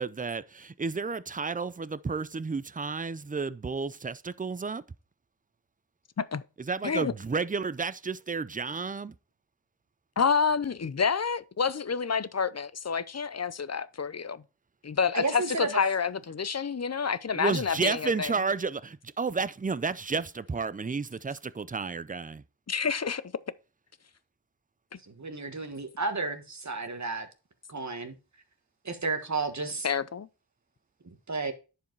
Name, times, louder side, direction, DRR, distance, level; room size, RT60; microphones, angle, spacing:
voice 1, 0.0-4.8 6.7-9.1 17.3-22.4, right 4 dB, 20° right, 0.4 m, -31 dB
voice 2, 10.2-14.4 14.8-18.3 22.7-23.2 29.8-30.3, left 6 dB, 35° left, 0.5 m, -28 dB
voice 3, 15.1-15.8 25.0-27.3 27.7-28.2 28.8-29.9 31.0-31.5, right 3 dB, 40° right, 1.4 m, -32 dB
10.5 x 4.8 x 4.6 m
wide cardioid pair, 75°, 45 cm